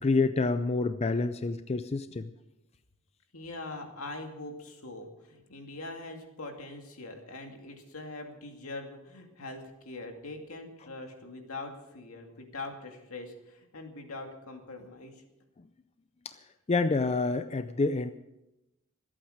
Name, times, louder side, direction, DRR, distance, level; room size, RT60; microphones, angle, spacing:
voice 1, 0.0-2.3 16.2-16.3 16.7-18.1, left 3 dB, 30° left, 10 dB, 0.5 m, -28 dB
voice 2, 3.3-15.2, left 2 dB, 75° left, 3 dB, 2.4 m, -42 dB
25.5 x 8.8 x 5.0 m, 0.93 s
head